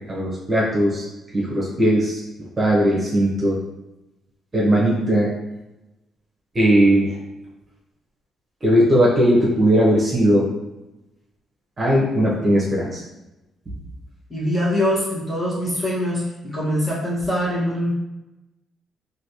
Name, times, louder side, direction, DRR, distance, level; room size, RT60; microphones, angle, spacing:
voice 1, 0.1-1.1 1.3-2.2 2.6-3.6 4.5-5.3 6.5-7.2 8.6-10.5 11.8-13.0, equal, 30° right, -5 dB, 0.9 m, -18 dB
voice 2, 14.3-17.9, equal, 20° left, -8 dB, 1.4 m, -23 dB
3.2 x 2.7 x 2.8 m, 0.98 s
cardioid pair, 90°, 0 cm